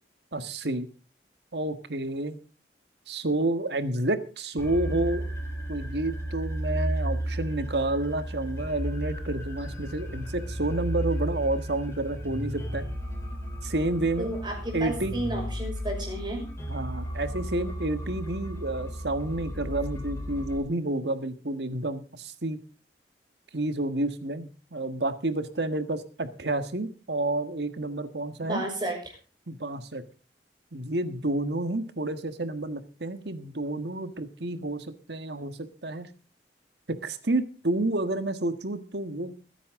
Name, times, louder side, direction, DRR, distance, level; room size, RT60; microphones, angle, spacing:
voice 1, 0.3-0.9 1.5-2.4 3.1-5.2 5.7-12.8 13.6-14.3 14.7-15.2 16.7-22.6 23.5-28.6 29.5-30.0 30.7-36.1 36.9-39.3, right 2 dB, 75° right, 10 dB, 1.6 m, -30 dB
sound 1, 4.6-20.6, equal, 15° left, 3.7 m, -34 dB
voice 2, 14.2-16.5 28.4-29.2, right 1 dB, 25° right, 2 dB, 5.9 m, -32 dB
21.5 x 10.0 x 3.7 m, 0.36 s
head